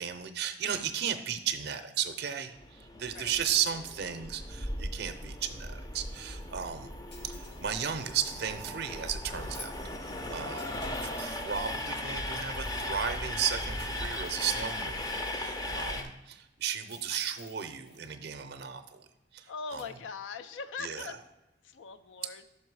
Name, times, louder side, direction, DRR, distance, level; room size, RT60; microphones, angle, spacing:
voice 1, 0.0-6.9 7.2-9.7 10.0-15.0 15.3-19.1 19.3-19.9 20.8-21.2, right 8 dB, 60° right, 8 dB, 0.5 m, -35 dB
Train, 2.6-16.0, left 1 dB, 20° left, 0.5 m, -37 dB
sound 1, 7.1-8.7 10.6-11.7 13.8-15.1 16.9-18.1 19.8-19.9, left 4 dB, 60° left, 1.0 m, -56 dB
voice 2, 19.5-21.2 21.6-22.4, left 5 dB, 85° left, 12 dB, 0.4 m, -41 dB
5.7 x 5.4 x 4.6 m, 1.0 s
head